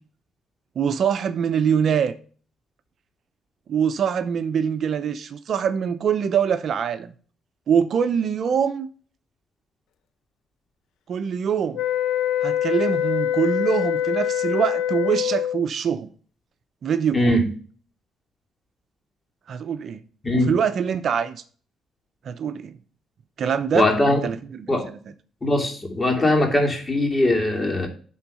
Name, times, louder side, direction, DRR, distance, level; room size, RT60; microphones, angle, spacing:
voice 1, 0.8-2.2 3.7-7.1 7.7-8.9 11.1-11.8 12.4-16.1 16.8-17.3 19.5-20.0 20.3-21.4 22.2-22.8 23.4-24.7, right 7 dB, 60° right, 0.7 m, -24 dB
sound 1, 11.7-15.7, left 10 dB, 85° left, 0.7 m, -24 dB
voice 2, 17.1-17.5 20.2-20.5 23.7-24.3 24.7-24.9 25.4-27.9, left 1 dB, 25° left, 2.7 m, -20 dB
11.0 x 3.9 x 5.6 m
cardioid pair, 90°, 0 cm